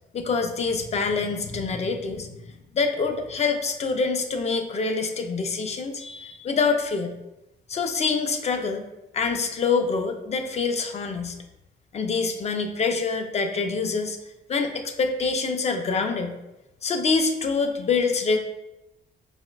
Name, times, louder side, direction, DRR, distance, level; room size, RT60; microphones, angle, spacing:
voice 1, 0.1-2.4 2.7-7.1 7.7-8.8 9.1-11.3 11.9-14.2 14.5-16.3 16.8-18.4, left 4 dB, 35° left, 5 dB, 0.3 m, -25 dB
4.3 x 2.0 x 2.2 m, 0.95 s
cardioid pair, 90°, 20 cm